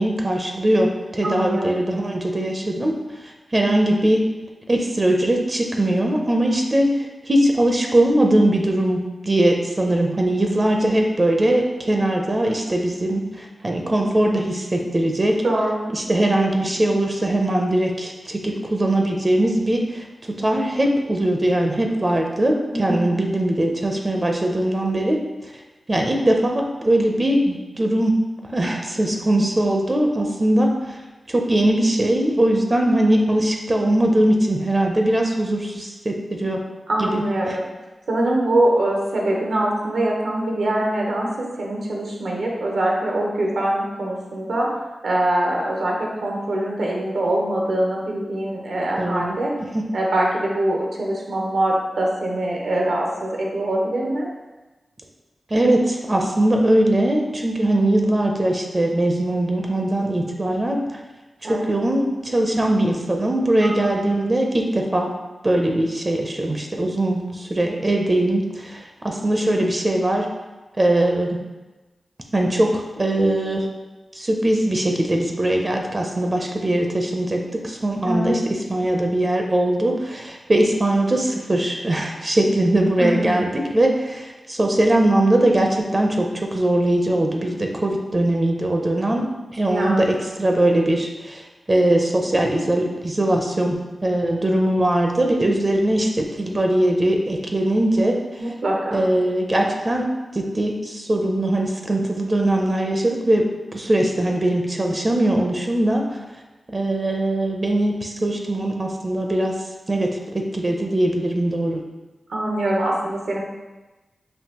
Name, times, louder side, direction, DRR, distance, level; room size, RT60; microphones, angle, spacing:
voice 1, 0.0-2.9 3.2-4.3 4.7-15.4 15.9-25.2 25.9-28.2 28.5-31.0 31.3-36.6 37.0-37.6 49.0-49.2 49.7-49.9 55.5-60.8 61.5-65.1 65.4-70.3 70.8-71.4 72.3-73.7 74.1-98.2 98.9-103.5 103.7-106.1 106.7-109.6 109.9-111.8, right 1 dB, 35° right, 2 dB, 0.5 m, -21 dB
voice 2, 1.2-1.9 15.4-15.9 22.7-23.2 36.9-37.7 38.1-44.7 45.0-49.5 49.9-54.3 61.4-61.7 63.6-64.3 78.0-78.5 83.0-83.3 89.7-90.1 98.4-99.0 112.3-113.4, right 1 dB, 85° right, -2 dB, 0.9 m, -23 dB
5.3 x 2.6 x 2.9 m, 1.1 s
cardioid pair, 65°, 0 cm